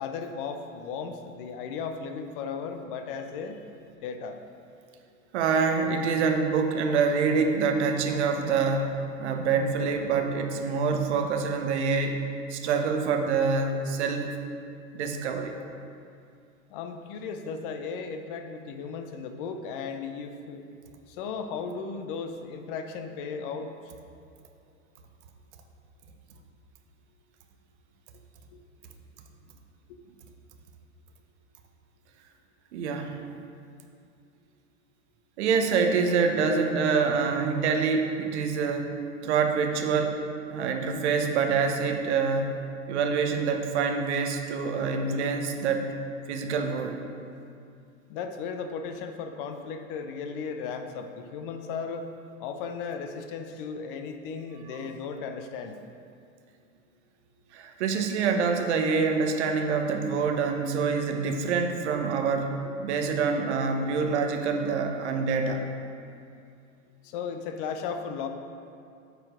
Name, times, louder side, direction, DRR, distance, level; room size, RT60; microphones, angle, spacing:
voice 1, 0.0-3.6 4.0-4.4 16.7-20.6 21.1-23.7 28.5-28.6 48.1-52.1 52.4-55.8 67.0-68.3, left 5 dB, 45° left, 7 dB, 0.6 m, -36 dB
voice 2, 5.3-12.2 12.5-14.3 14.9-15.5 32.7-33.1 35.4-40.2 40.5-42.6 42.9-45.9 46.3-47.0 57.5-62.5 62.8-65.6, right 5 dB, 55° right, 5 dB, 0.9 m, -26 dB
8.0 x 4.4 x 4.9 m, 2.5 s
figure-of-eight pair, 90°, 39 cm